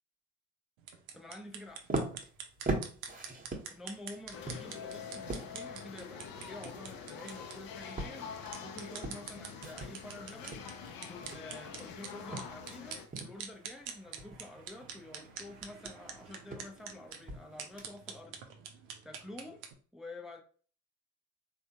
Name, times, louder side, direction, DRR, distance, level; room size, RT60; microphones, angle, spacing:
sound 1, 0.8-19.7, right 7 dB, 80° right, 0.6 m, -47 dB
voice 1, 1.1-1.9 3.7-8.3 8.6-10.6 11.0-18.4 19.0-19.6 19.9-20.4, left 1 dB, ahead, 0.5 m, -49 dB
sound 2, 1.7-12.8 13.1-13.6 13.9-18.2, right 2 dB, 20° right, 0.9 m, -41 dB
sound 3, 4.3-13.1, left 6 dB, 55° left, 0.6 m, -46 dB
3.4 x 2.3 x 2.8 m
hypercardioid pair, 45°, 40 cm